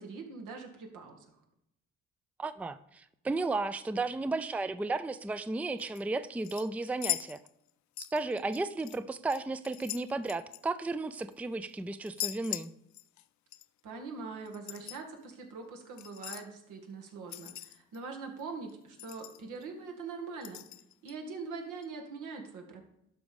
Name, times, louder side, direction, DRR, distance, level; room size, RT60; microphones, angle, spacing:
voice 1, 0.0-1.4 13.8-20.6 21.0-22.8, right 4 dB, 80° right, 3 dB, 2.1 m, -43 dB
voice 2, 2.4-7.4 8.1-12.7, right 3 dB, 5° right, 12 dB, 0.4 m, -34 dB
sound 1, 5.8-6.0 6.4-7.7 8.0-9.0 9.3-11.3 12.0-13.2 13.5-13.7 14.5-15.0 16.0-16.5 17.3-18.0 18.4-18.5 18.7-18.8 19.0-19.6 20.4-21.1 21.8-21.9, left 15 dB, 70° left, 0.5 m, -40 dB
12.0 x 5.1 x 5.3 m, 0.79 s
cardioid pair, 90°, 30 cm